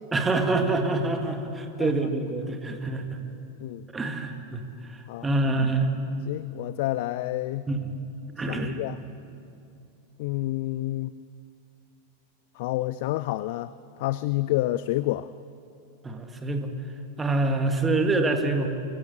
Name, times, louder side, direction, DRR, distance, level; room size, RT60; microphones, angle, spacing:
voice 1, 0.1-3.2 3.9-5.9 7.7-7.9 8.4-8.8 16.0-16.7 17.2-18.7, right 2 dB, 15° right, 5 dB, 2.1 m, -26 dB
voice 2, 6.3-7.7 8.5-9.0 10.2-11.1 12.6-13.7 14.0-15.3, left 16 dB, 50° left, 16 dB, 0.4 m, -29 dB
23.0 x 15.5 x 8.3 m, 2.7 s
figure-of-eight pair, 90°, 0 cm